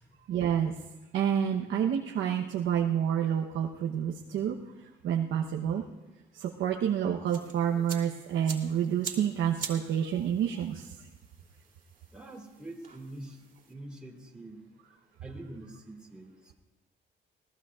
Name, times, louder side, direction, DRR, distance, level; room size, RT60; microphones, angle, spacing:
voice 1, 0.3-0.7 1.1-4.6 5.0-5.8 6.4-10.8, right 9 dB, 80° right, 0 dB, 1.0 m, -28 dB
sound 1, 7.3-13.7, right 5 dB, 40° right, 3.0 m, -45 dB
voice 2, 12.1-13.4 13.7-14.6 15.2-16.5, right 1 dB, 5° right, -2 dB, 3.4 m, -45 dB
20.5 x 17.5 x 2.4 m, 1.1 s
cardioid pair, 90°, 20 cm